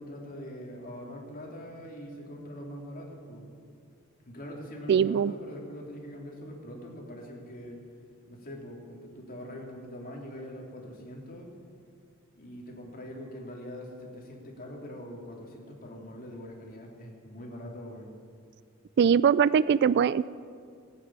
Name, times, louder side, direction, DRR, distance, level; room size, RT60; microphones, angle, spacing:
voice 1, 0.0-3.4 4.2-7.8 8.3-11.5 12.3-18.1, equal, 40° left, -1 dB, 3.1 m, -43 dB
voice 2, 4.9-5.3 19.0-20.3, right 7 dB, 50° right, 18 dB, 0.3 m, -22 dB
18.5 x 9.0 x 8.8 m, 2.2 s
head